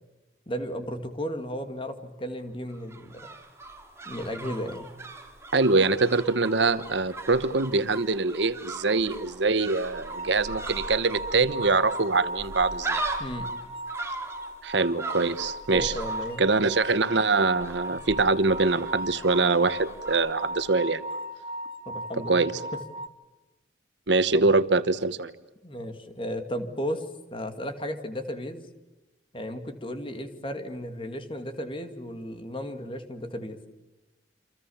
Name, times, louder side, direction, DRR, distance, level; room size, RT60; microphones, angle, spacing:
voice 1, 0.5-3.3 4.0-4.9 13.2-13.5 15.7-16.4 21.9-22.5 24.3-24.4 25.6-27.1 27.3-28.6 29.3-33.6, equal, 30° left, 8 dB, 2.4 m, -34 dB
sound 1, 2.7-20.9 21.1-21.2, right 2 dB, 15° right, 2.9 m, -40 dB
voice 2, 5.5-13.0 14.6-15.9 16.4-21.0 22.3-22.5 24.1-25.3, right 3 dB, 75° right, 13 dB, 1.2 m, -24 dB
sound 2, 9.9-23.1, right 1 dB, 30° right, 1.0 m, -37 dB
29.0 x 26.5 x 7.2 m, 1.0 s
head